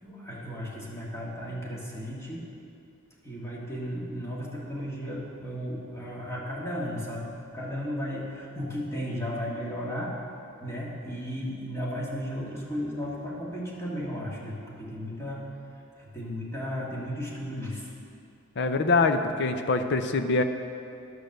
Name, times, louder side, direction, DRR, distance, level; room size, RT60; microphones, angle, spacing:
voice 1, 0.0-2.5 3.2-10.1 10.6-15.5 16.0-17.9, equal, 15° left, -5 dB, 1.8 m, -35 dB
voice 2, 18.6-20.4, left 3 dB, 55° left, 8 dB, 0.6 m, -24 dB
10.5 x 6.4 x 6.6 m, 2.6 s
head